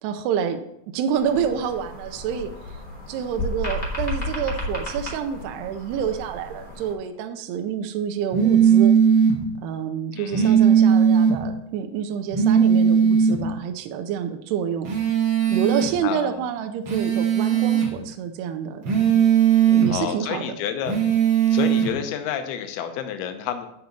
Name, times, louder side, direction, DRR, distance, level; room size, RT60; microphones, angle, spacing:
voice 1, 0.0-0.6 0.9-2.5 3.1-9.0 9.6-15.0 15.5-18.8 19.7-20.5, right 8 dB, 80° right, 6 dB, 2.6 m, -28 dB
sound 1, 1.2-6.9, left 1 dB, 35° left, 0.9 m, -33 dB
sound 2, 8.3-9.4 10.3-11.4 12.3-13.4 14.8-15.9 16.8-17.9 18.8-19.9 20.8-21.9, right 8 dB, 60° right, 1.2 m, -18 dB
voice 2, 10.1-10.6 16.0-16.5 19.9-21.0 21.5-23.7, left 9 dB, 75° left, 7 dB, 2.7 m, -29 dB
9.5 x 5.0 x 7.1 m, 0.78 s
omnidirectional pair, 5.0 m